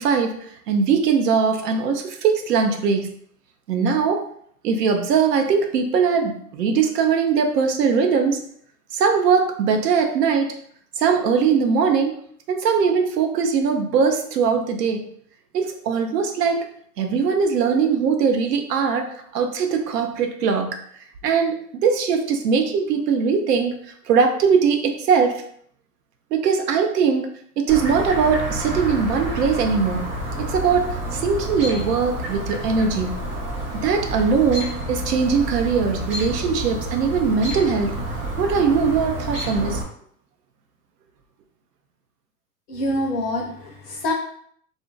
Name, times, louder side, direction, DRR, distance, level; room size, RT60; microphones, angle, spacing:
voice 1, 0.0-3.1 3.7-4.2 4.6-8.4 8.9-10.5 11.0-12.2 12.5-15.0 15.5-16.6 17.0-20.8 21.2-23.8 24.1-25.4 26.3-27.3 27.6-33.2 33.8-37.9 38.4-39.8, right 5 dB, 80° right, 5 dB, 0.7 m, -21 dB
Chirp tweet, 27.7-39.8, right 1 dB, 25° right, 0.7 m, -29 dB
voice 2, 42.7-44.1, left 1 dB, 40° left, -1 dB, 0.8 m, -26 dB
2.5 x 2.1 x 3.8 m, 0.65 s
hypercardioid pair, 125°, 48 cm